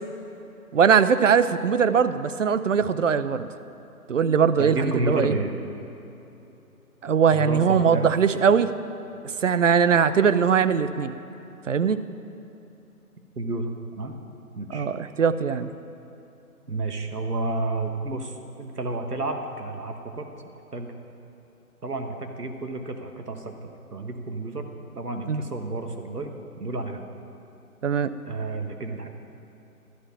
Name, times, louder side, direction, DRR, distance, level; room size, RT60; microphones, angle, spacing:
voice 1, 0.7-3.5 4.1-5.3 7.0-8.7 9.4-11.2 11.7-12.0 14.7-15.7 25.3-25.4 27.8-28.1, right 6 dB, 55° right, 13 dB, 0.5 m, -21 dB
voice 2, 4.6-5.5 7.3-8.1 13.4-13.6 14.0-14.1 14.6-14.9 16.7-20.3 20.7-20.9 21.8-26.3 26.6-27.0 28.3-29.1, right 2 dB, 85° right, 4 dB, 1.3 m, -30 dB
11.5 x 5.6 x 8.4 m, 3.0 s
figure-of-eight pair, 145°, 45 cm